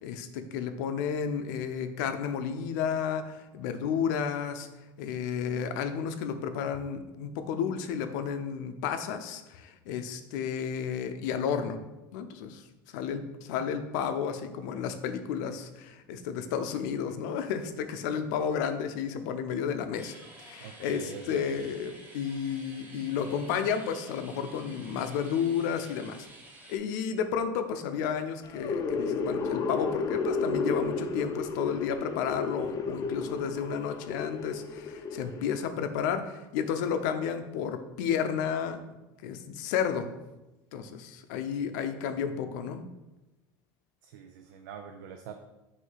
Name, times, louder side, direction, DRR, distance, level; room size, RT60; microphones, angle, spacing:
voice 1, 0.0-4.7 5.0-11.8 12.1-12.7 12.9-26.3 26.7-38.8 39.2-40.1 40.7-42.8, left 7 dB, 80° left, 8 dB, 0.6 m, -32 dB
sound 1, 20.0-26.8, right 1 dB, 15° right, 1.0 m, -51 dB
voice 2, 20.6-21.6 44.0-45.4, right 7 dB, 90° right, 5 dB, 0.5 m, -44 dB
sound 2, 28.4-35.7, left 4 dB, 35° left, 0.5 m, -32 dB
6.4 x 2.8 x 5.6 m, 1.0 s
supercardioid pair, 130°, 10 cm